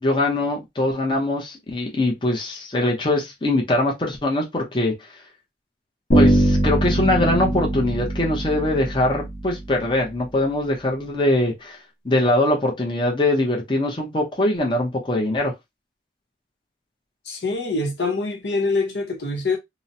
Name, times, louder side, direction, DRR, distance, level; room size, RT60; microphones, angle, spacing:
voice 1, 0.0-4.9 6.1-11.8 12.0-15.5, left 1 dB, 25° left, 0.6 m, -22 dB
Bass guitar, 6.1-9.9, right 1 dB, 60° left, 1.1 m, -21 dB
voice 2, 17.3-19.6, left 3 dB, 80° left, 0.8 m, -24 dB
2.9 x 2.0 x 2.6 m
head